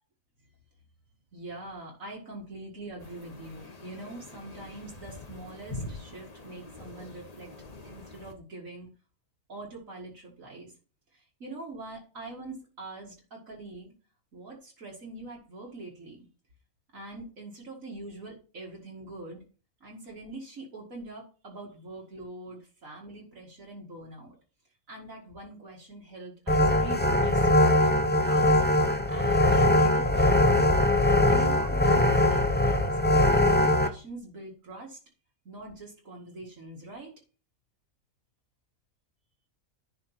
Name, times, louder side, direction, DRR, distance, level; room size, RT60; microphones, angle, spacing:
voice 1, 1.3-7.5 7.8-8.9 9.5-10.7 11.1-13.9 14.3-16.3 16.9-19.4 19.8-24.3 24.9-28.6 29.1-30.7 31.2-33.0 33.4-35.0 35.5-37.1, right 2 dB, 65° right, -2 dB, 2.4 m, -43 dB
sound 1, 3.0-8.3, left 2 dB, 30° left, 1.2 m, -44 dB
sound 2, 26.5-33.9, left 1 dB, 10° left, 0.5 m, -22 dB
10.5 x 4.3 x 5.8 m, 0.36 s
omnidirectional pair, 1.5 m